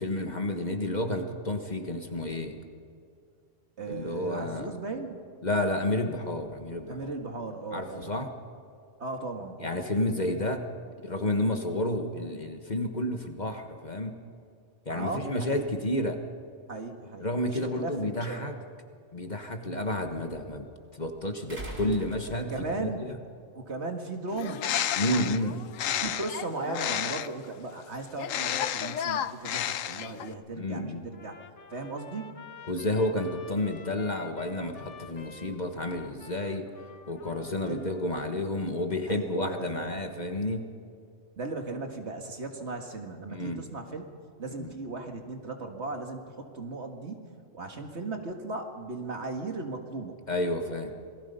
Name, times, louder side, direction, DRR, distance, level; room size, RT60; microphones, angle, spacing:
voice 1, 0.0-2.6 3.9-4.7 5.4-7.1 7.7-8.3 9.6-10.6 11.0-14.1 14.8-16.2 17.2-18.5 19.1-20.6 20.9-23.2 25.0-25.6 30.6-31.0 32.7-36.7 37.1-40.6 43.3-43.6 44.5-44.7 50.3-50.9, left 1 dB, 35° left, 5 dB, 1.5 m, -30 dB
voice 2, 3.8-5.2 6.9-8.1 9.0-9.9 14.9-15.7 16.7-18.5 22.5-23.0 23.5-24.7 26.0-31.4 31.7-32.4 37.6-37.9 39.1-40.0 41.4-44.0 44.4-50.2, right 3 dB, 60° right, 4 dB, 2.0 m, -37 dB
sound 1, 21.5-22.8 24.1-24.2, right 1 dB, 80° right, 4.3 m, -41 dB
Bird, 24.3-27.5 28.2-30.3, left 10 dB, 85° left, 1.1 m, -31 dB
Trumpet, 31.1-38.2, left 5 dB, 65° left, 1.4 m, -49 dB
27.5 x 19.0 x 5.5 m, 2.4 s
omnidirectional pair, 1.3 m